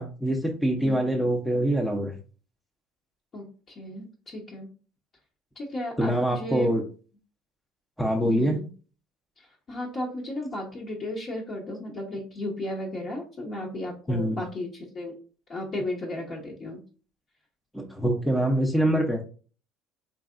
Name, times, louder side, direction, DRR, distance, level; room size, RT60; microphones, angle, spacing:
voice 1, 0.0-2.1 6.0-6.8 8.0-8.6 14.1-14.4 17.7-19.2, right 1 dB, ahead, 1 dB, 0.7 m, -24 dB
voice 2, 3.3-4.7 5.5-6.7 8.2-8.7 9.4-15.1 15.5-16.8, left 1 dB, 40° left, -3 dB, 1.0 m, -35 dB
4.0 x 3.3 x 2.5 m, 0.39 s
supercardioid pair, 85°, 0 cm